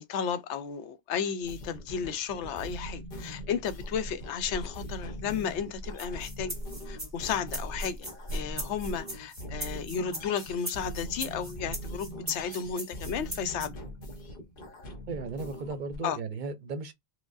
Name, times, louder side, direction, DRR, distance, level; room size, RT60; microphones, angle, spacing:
voice 1, 0.0-6.6 6.9-13.8 16.0-16.2, left 7 dB, 80° left, 0.9 m, -33 dB
sound 1, 1.4-16.0, equal, 55° left, 1.1 m, -42 dB
sound 2, 3.7-9.0, equal, 25° left, 1.0 m, -41 dB
sound 3, 6.0-13.7, equal, 15° right, 1.1 m, -39 dB
voice 2, 15.1-16.9, right 3 dB, 55° right, 0.7 m, -36 dB
4.8 x 2.1 x 2.4 m
omnidirectional pair, 1.2 m